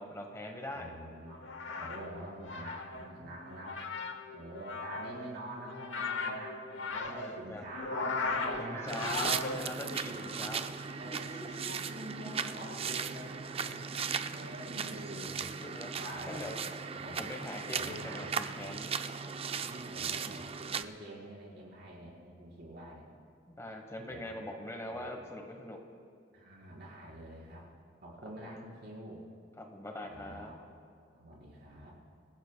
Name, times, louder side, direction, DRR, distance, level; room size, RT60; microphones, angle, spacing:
voice 1, 0.0-0.9 1.8-1.9 7.1-7.6 8.6-10.7 11.1-11.7 15.6-15.9 16.3-16.6 17.2-18.9 23.5-25.8 28.4-28.5 29.6-30.5, left 1 dB, 15° left, 3 dB, 1.1 m, -42 dB
voice 2, 0.7-1.4 1.8-3.8 4.3-9.3 11.0-13.8 14.3-15.5 16.0-16.4 16.9-17.2 17.7-18.6 19.5-23.1 23.9-24.2 24.9-25.0 26.3-27.7 28.0-29.2 30.1-30.6 31.1-31.9, right 1 dB, 60° right, -4 dB, 4.3 m, -46 dB
sound 1, 1.3-10.0, left 3 dB, 75° left, 1.0 m, -38 dB
sound 2, 8.9-20.8, right 6 dB, 30° right, 0.4 m, -37 dB
26.0 x 15.0 x 2.3 m, 2.2 s
head